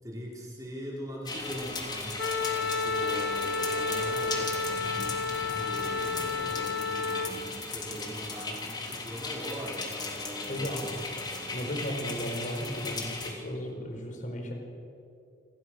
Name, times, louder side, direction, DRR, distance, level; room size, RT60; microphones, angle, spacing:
voice 1, 0.0-2.2 2.6-11.6, equal, 20° right, -4 dB, 5.2 m, -41 dB
sound 1, 1.2-13.3, left 3 dB, 25° left, 3.2 m, -37 dB
sound 2, 1.4-6.6, right 2 dB, 70° right, 4.8 m, -49 dB
Wind instrument woodwind instrument, 2.2-7.3, left 4 dB, 65° left, 1.5 m, -31 dB
voice 2, 10.5-10.8 11.5-14.5, equal, 45° left, 3 dB, 4.7 m, -35 dB
28.5 x 26.0 x 6.6 m, 2.6 s
head